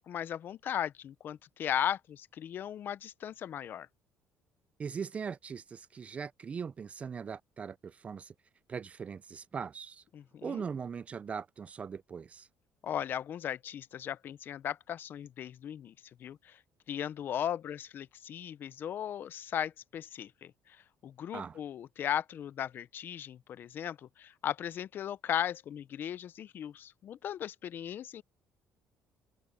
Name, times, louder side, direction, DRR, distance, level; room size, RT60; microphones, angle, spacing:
voice 1, 0.0-3.9 10.1-10.6 12.8-15.9 16.2-16.6 16.9-20.8 21.0-28.2, left 10 dB, 45° left, 0.6 m, -37 dB
voice 2, 4.8-8.3 8.7-10.0 10.4-12.5 21.3-21.6, right 6 dB, 30° right, 0.3 m, -40 dB
cardioid pair, 135°, 5 cm